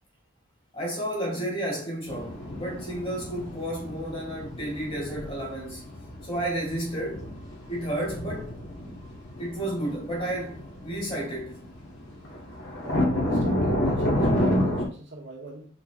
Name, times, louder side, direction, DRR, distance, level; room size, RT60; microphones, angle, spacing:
voice 1, 0.7-5.9 6.2-7.2 7.7-8.5 9.4-11.6, right 1 dB, 30° left, 1.9 m, -32 dB
sound 1, 2.1-14.9, left 1 dB, 65° left, 1.3 m, -30 dB
voice 2, 12.8-15.7, right 2 dB, 60° right, 1.6 m, -41 dB
4.4 x 4.1 x 2.4 m
head